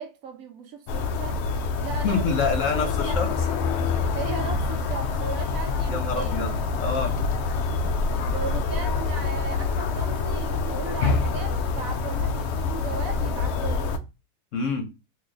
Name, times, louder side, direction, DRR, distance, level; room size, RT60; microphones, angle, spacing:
voice 1, 0.0-1.4 1.8-3.2 4.1-6.4 8.2-13.9, right 5 dB, 65° right, 1.0 m, -36 dB
sound 1, 0.9-14.0, left 4 dB, 75° left, 0.6 m, -26 dB
voice 2, 1.8-3.5 5.9-7.2 14.5-14.8, left 5 dB, 60° left, 1.0 m, -27 dB
3.2 x 2.6 x 3.8 m
omnidirectional pair, 1.7 m